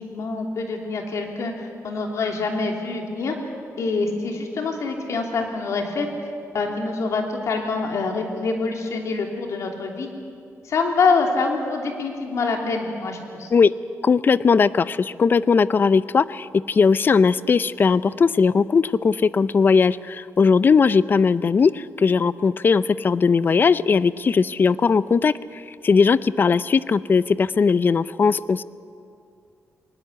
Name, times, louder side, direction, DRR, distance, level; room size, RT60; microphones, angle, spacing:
voice 1, 0.0-3.3 3.8-6.1 6.5-10.1 10.6-13.5, left 4 dB, 65° left, 2 dB, 3.2 m, -25 dB
voice 2, 14.0-28.6, left 5 dB, 40° left, 17 dB, 0.5 m, -19 dB
21.0 x 20.0 x 8.2 m, 2.4 s
cardioid pair, 120°, 6 cm